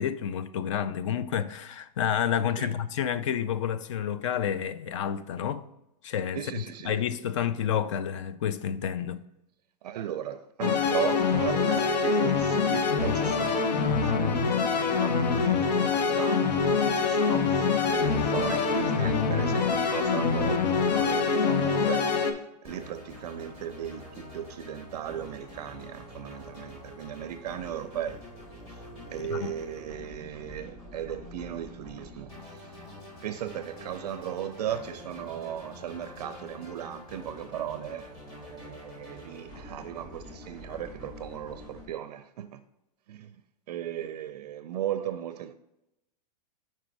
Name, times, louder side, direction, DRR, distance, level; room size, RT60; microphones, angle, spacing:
voice 1, 0.0-5.6 6.0-9.2 29.3-29.5, left 9 dB, 45° left, 0.4 m, -29 dB
voice 2, 6.4-7.0 9.8-14.3 15.0-22.2 22.6-28.2 28.7-28.8 29.1-32.7 33.2-42.6 43.1-43.4 43.7-45.5, right 10 dB, 70° right, 0.4 m, -37 dB
sound 1, 10.6-22.3, left 5 dB, 85° left, 0.9 m, -25 dB
sound 2, 22.6-41.8, left 1 dB, 20° left, 2.2 m, -46 dB
5.0 x 4.4 x 4.6 m
supercardioid pair, 170°, 21 cm